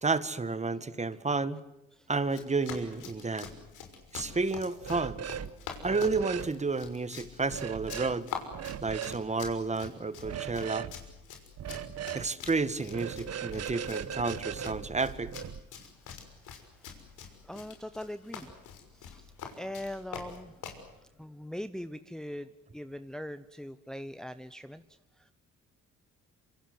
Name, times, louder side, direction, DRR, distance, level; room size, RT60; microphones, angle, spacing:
voice 1, 0.0-1.6 2.1-3.5 4.1-5.2 5.8-8.3 8.8-10.9 12.1-15.3, right 3 dB, 20° right, 14 dB, 1.7 m, -31 dB
Run, 2.2-20.8, left 7 dB, 80° left, 6.1 m, -45 dB
sound 1, 4.8-5.5 5.8-6.5 7.5-8.1 8.5-9.2 10.2-10.9 11.6-12.3 12.9-15.6, right 9 dB, 55° right, 1.4 m, -38 dB
voice 2, 16.0-25.3, left 1 dB, ahead, 11 dB, 1.0 m, -43 dB
27.0 x 26.5 x 8.0 m, 0.92 s
cardioid pair, 90°, 30 cm